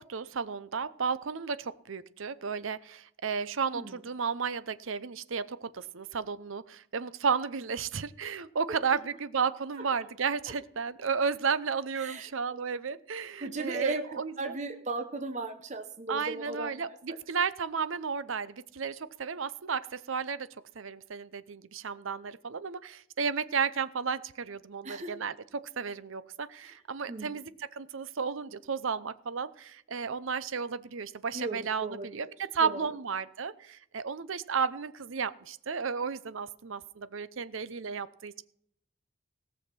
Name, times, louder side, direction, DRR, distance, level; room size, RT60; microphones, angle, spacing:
voice 1, 0.0-14.5 16.1-20.5 20.8-25.3 25.8-38.4, right 6 dB, 70° right, 15 dB, 0.7 m, -33 dB
voice 2, 11.9-12.6 13.4-17.0 24.8-25.1 26.6-26.7 27.1-27.4 31.3-32.1 32.6-32.9, right 2 dB, 35° right, 6 dB, 0.9 m, -36 dB
17.5 x 6.5 x 5.7 m, 0.68 s
head